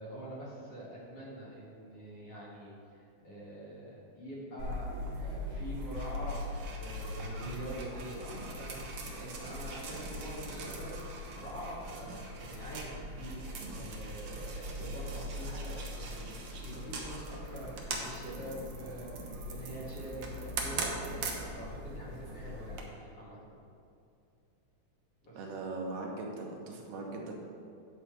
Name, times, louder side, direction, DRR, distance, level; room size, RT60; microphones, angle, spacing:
voice 1, 0.0-2.7 3.2-4.9 5.2-23.6 25.2-25.4, right 1 dB, 50° left, -7 dB, 3.1 m, -45 dB
sound 1, 4.6-22.8, right 1 dB, 65° right, 1.3 m, -40 dB
voice 2, 25.3-27.3, right 2 dB, 85° right, 0 dB, 2.7 m, -39 dB
9.4 x 4.9 x 6.8 m, 2.5 s
omnidirectional pair, 3.6 m